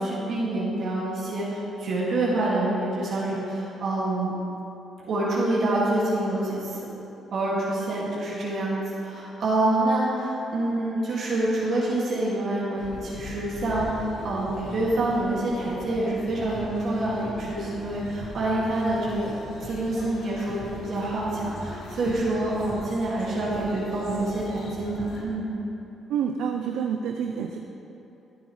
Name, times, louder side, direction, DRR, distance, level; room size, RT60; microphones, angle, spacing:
voice 1, 0.0-4.3 5.1-6.9 7.3-19.3 19.6-25.5, right 1 dB, 65° right, -7 dB, 2.0 m, -27 dB
sound 1, 12.8-25.2, left 1 dB, 80° left, 1.7 m, -40 dB
voice 2, 26.1-27.6, right 7 dB, 85° right, 4 dB, 0.5 m, -28 dB
14.0 x 7.9 x 3.1 m, 3.0 s
cardioid pair, 90°, 0 cm